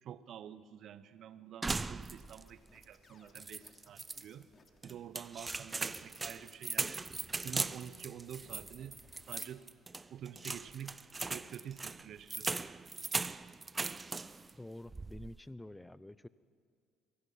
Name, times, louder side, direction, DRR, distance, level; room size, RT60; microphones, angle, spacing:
voice 1, 0.0-4.5 4.8-7.0 7.4-9.0 9.3-9.7 10.1-12.6, right 9 dB, 55° right, 15 dB, 1.0 m, -48 dB
sound 1, 1.6-2.5 2.8-2.9 3.4-4.2 4.8-14.5 14.9-15.4, right 3 dB, 25° right, 0.6 m, -39 dB
sound 2, 2.2-9.5, left 4 dB, 35° left, 3.0 m, -64 dB
voice 2, 14.5-16.3, left 1 dB, 10° left, 17 dB, 0.7 m, -48 dB
25.0 x 23.0 x 5.8 m, 2.3 s
hypercardioid pair, 60°, 0 cm